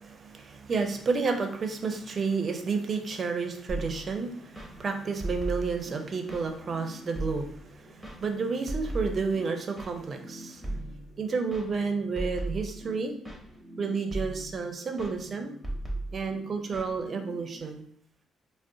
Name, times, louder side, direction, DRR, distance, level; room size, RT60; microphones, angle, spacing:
voice 1, 0.0-10.6 11.2-13.2 13.8-15.5 16.1-17.8, right 4 dB, 45° right, 5 dB, 0.5 m, -31 dB
sound 1, 3.7-17.6, right 1 dB, ahead, 0.9 m, -39 dB
2.4 x 2.1 x 3.7 m, 0.64 s
cardioid pair, 90°, 0 cm